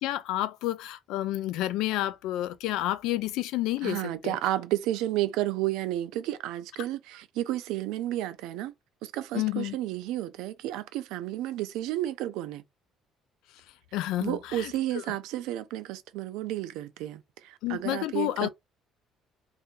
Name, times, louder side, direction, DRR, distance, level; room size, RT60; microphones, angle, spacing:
voice 1, 0.0-4.4 9.3-9.8 13.9-15.0 17.6-18.5, left 15 dB, 80° left, 0.4 m, -30 dB
voice 2, 3.8-8.7 9.0-12.6 14.2-18.5, right 14 dB, 90° right, 0.5 m, -32 dB
2.7 x 2.5 x 3.7 m
cardioid pair, 160°, 0 cm